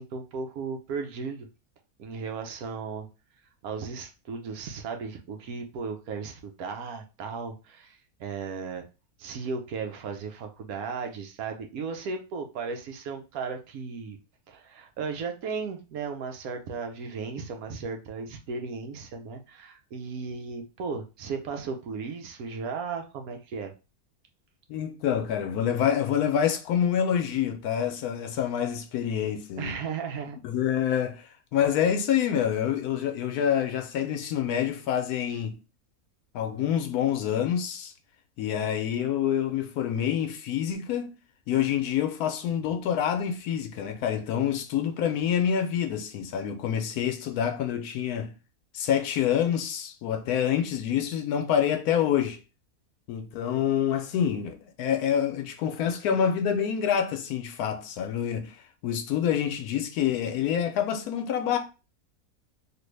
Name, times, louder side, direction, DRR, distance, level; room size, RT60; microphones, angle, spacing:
voice 1, 0.0-1.5 2.0-3.1 3.6-8.8 9.2-14.2 14.5-23.7 29.6-30.4, right 5 dB, 75° right, 1.1 m, -35 dB
voice 2, 24.7-29.8 30.4-35.6 36.3-37.9 38.4-41.1 41.5-48.3 48.7-52.4 53.1-58.5 58.8-61.6, left 9 dB, 80° left, 1.1 m, -27 dB
3.3 x 2.5 x 3.1 m
omnidirectional pair, 1.6 m